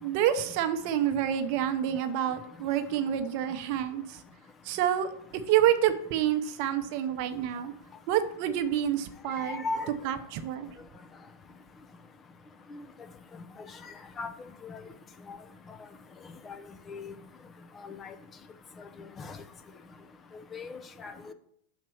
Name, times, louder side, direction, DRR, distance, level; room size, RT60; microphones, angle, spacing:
voice 1, 0.0-4.0 4.7-7.7 8.1-9.6 10.0-10.7, right 10 dB, 55° right, 9 dB, 0.7 m, -28 dB
voice 2, 9.4-9.9 12.7-12.8 14.2-14.3 14.7-14.8 15.3-15.4 16.9-17.0 17.8-18.1 19.2-19.4 20.5-21.3, left 3 dB, 25° left, 10 dB, 0.6 m, -37 dB
5.8 x 4.3 x 6.3 m, 0.69 s
hypercardioid pair, 120°, 0 cm